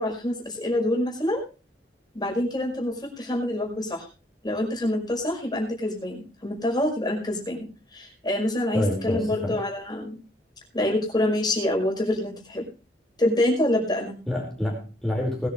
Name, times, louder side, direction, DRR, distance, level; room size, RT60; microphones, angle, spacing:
voice 1, 0.0-1.4 2.1-4.1 4.4-7.7 7.9-10.2 10.7-12.6 13.2-14.2, left 1 dB, 25° left, 1 dB, 5.5 m, -26 dB
voice 2, 8.7-9.6 14.3-15.5, left 1 dB, 5° left, -3 dB, 4.9 m, -28 dB
21.0 x 10.5 x 3.2 m, 0.31 s
head